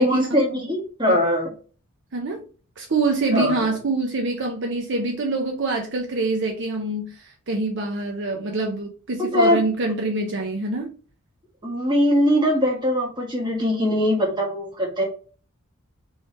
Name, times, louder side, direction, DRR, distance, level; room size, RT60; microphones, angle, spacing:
voice 1, 0.0-1.5 3.3-3.7 9.3-9.6 11.6-15.0, equal, 20° right, 1.4 m, -21 dB
voice 2, 2.1-2.4 2.8-10.9, right 3 dB, 55° right, 0.7 m, -25 dB
3.3 x 3.1 x 4.2 m
head